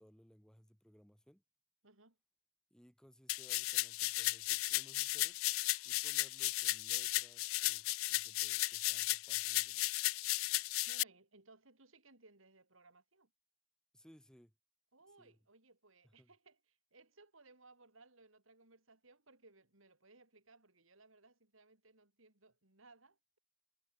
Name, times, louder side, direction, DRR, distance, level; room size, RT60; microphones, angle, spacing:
voice 1, 0.0-1.4 2.7-5.4 5.8-9.9 13.9-14.5 15.2-15.3 16.2-16.3, equal, 5° left, 2.0 m, -63 dB
voice 2, 1.8-2.2 10.9-13.3 14.9-23.4, right 3 dB, 75° right, 4.7 m, -64 dB
sound 1, 3.3-11.0, left 19 dB, 80° left, 0.4 m, -35 dB
head